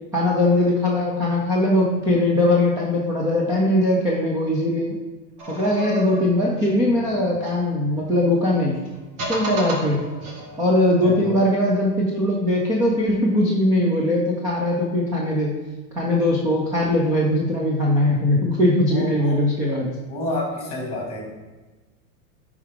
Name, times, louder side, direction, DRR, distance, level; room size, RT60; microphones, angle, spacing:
voice 1, 0.1-5.0 5.5-8.8 9.3-10.0 10.6-15.6 16.0-19.9, left 1 dB, 10° right, -4 dB, 0.4 m, -20 dB
sound 1, 5.4-8.1 8.8-10.8, right 1 dB, 60° right, 2.3 m, -33 dB
voice 2, 11.0-11.5 18.9-19.4 20.1-21.3, left 1 dB, 10° left, -2 dB, 2.3 m, -29 dB
10.0 x 4.8 x 3.7 m, 1.2 s
supercardioid pair, 145°, 47 cm